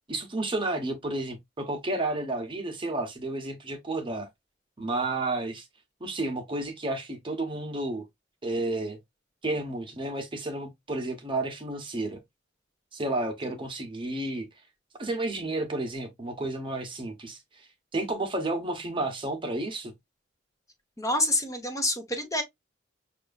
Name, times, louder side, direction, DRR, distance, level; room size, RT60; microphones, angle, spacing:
voice 1, 0.1-4.3 4.8-5.7 6.0-8.0 8.4-9.0 9.4-12.2 12.9-14.5 15.0-19.9, right 2 dB, 30° right, 0.8 m, -31 dB
voice 2, 21.0-22.4, left 1 dB, 20° left, 0.8 m, -27 dB
6.1 x 2.5 x 2.2 m
head